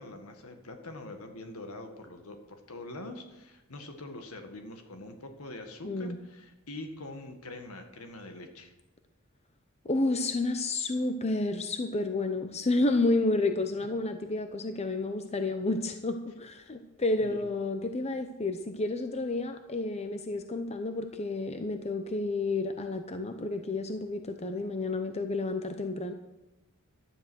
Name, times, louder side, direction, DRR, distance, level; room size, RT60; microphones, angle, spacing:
voice 1, 0.0-8.7 17.2-17.4, left 2 dB, 75° left, 5 dB, 1.7 m, -44 dB
voice 2, 5.8-6.2 9.8-26.1, left 2 dB, 30° left, 7 dB, 0.7 m, -30 dB
12.5 x 10.5 x 6.3 m, 1.0 s
head